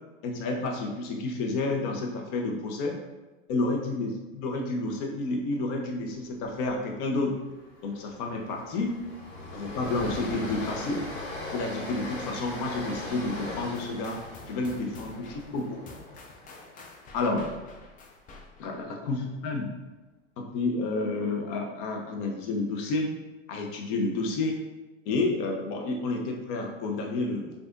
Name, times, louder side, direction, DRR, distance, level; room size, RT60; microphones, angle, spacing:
voice 1, 0.2-2.9 3.5-7.3 7.8-9.0 9.5-11.0 11.5-14.2 14.5-15.8 17.1-17.5 18.6-19.7 20.4-23.1 23.5-24.6 25.1-27.5, left 3 dB, 50° left, 1 dB, 0.9 m, -30 dB
Train, 6.4-6.7 7.0-7.1 7.5-17.6, left 2 dB, 70° left, 1.3 m, -39 dB
sound 1, 13.7-18.9, left 3 dB, 20° left, 0.4 m, -49 dB
4.8 x 2.5 x 2.6 m, 1.1 s
hypercardioid pair, 95°, 39 cm